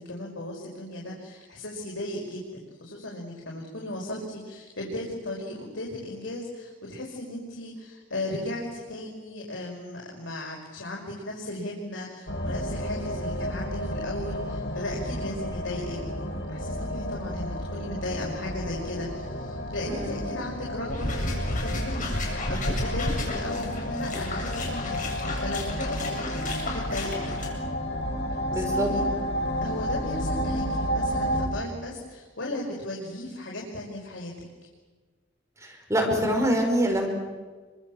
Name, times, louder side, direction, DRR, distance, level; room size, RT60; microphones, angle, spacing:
voice 1, 0.0-27.6 28.5-29.1 29.6-34.3, left 1 dB, 90° left, -2 dB, 5.7 m, -36 dB
sound 1, 12.3-31.5, equal, 70° left, 4.8 m, -31 dB
voice 2, 19.9-20.2 28.5-28.9 35.6-37.1, equal, 15° right, 1 dB, 5.5 m, -25 dB
sound 2, 20.9-27.5, left 1 dB, 45° left, 7.6 m, -32 dB
28.5 x 25.5 x 7.4 m, 1.4 s
head